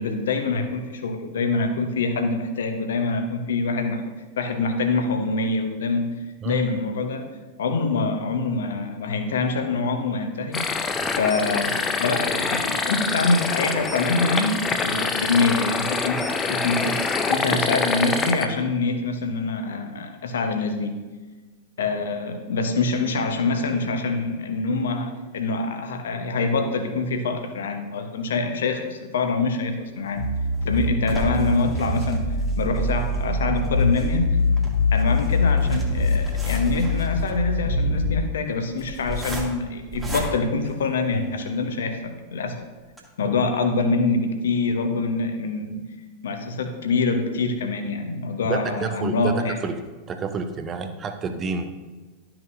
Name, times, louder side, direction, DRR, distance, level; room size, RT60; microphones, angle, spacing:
voice 1, 0.0-6.1 6.4-7.3 7.6-10.9 11.2-17.0 17.3-21.0 21.8-30.3 30.7-34.3 34.9-42.6 43.2-45.8 46.2-49.6, left 3 dB, 65° left, 6 dB, 0.9 m, -25 dB
sound 1, 10.5-18.5, left 4 dB, 20° left, 0.6 m, -25 dB
sound 2, 30.1-41.5 42.0-42.1 42.4-42.5 42.9-43.0, right 1 dB, 5° right, 1.6 m, -36 dB
sound 3, 30.2-38.2, left 2 dB, 45° left, 1.3 m, -23 dB
voice 2, 48.5-49.8 50.1-51.8, right 5 dB, 25° right, 7 dB, 0.7 m, -29 dB
12.0 x 5.9 x 2.6 m, 1.3 s
figure-of-eight pair, 90°, 0 cm